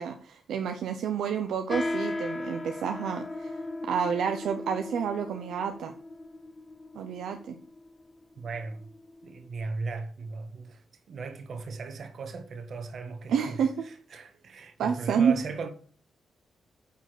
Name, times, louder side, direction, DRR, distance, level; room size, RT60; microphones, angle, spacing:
voice 1, 0.0-5.9 6.9-7.6 13.3-13.7 14.8-15.4, right 7 dB, 85° right, 0.7 m, -29 dB
sound 1, 1.7-9.5, left 2 dB, 30° left, 1.0 m, -37 dB
voice 2, 8.3-8.8 9.2-13.6 13.8-15.7, right 4 dB, 65° right, 1.5 m, -37 dB
9.4 x 4.1 x 6.4 m
cardioid pair, 70°, 0 cm